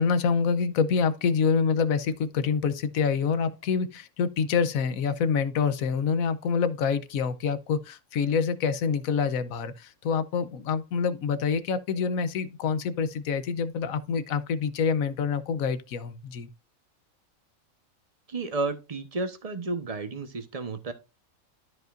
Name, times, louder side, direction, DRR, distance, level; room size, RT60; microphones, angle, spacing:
voice 1, 0.0-16.5, left 6 dB, 80° left, 1.2 m, -26 dB
voice 2, 18.3-20.9, right 3 dB, 30° right, 1.1 m, -32 dB
13.0 x 5.2 x 2.5 m
omnidirectional pair, 1.4 m